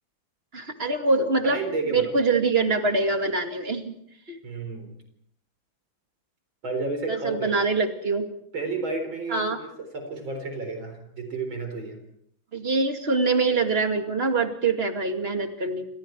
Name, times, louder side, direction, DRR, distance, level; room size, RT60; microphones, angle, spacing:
voice 1, 0.5-1.6 1.9-3.9 4.3-4.4 7.1-8.3 9.3-9.6 12.5-15.8, right 3 dB, 30° right, 5 dB, 2.6 m, -24 dB
voice 2, 1.4-2.1 4.4-4.9 6.6-7.5 8.5-9.7 9.9-12.0, right 3 dB, 75° right, 5 dB, 5.0 m, -31 dB
29.5 x 27.0 x 4.6 m, 0.70 s
omnidirectional pair, 2.2 m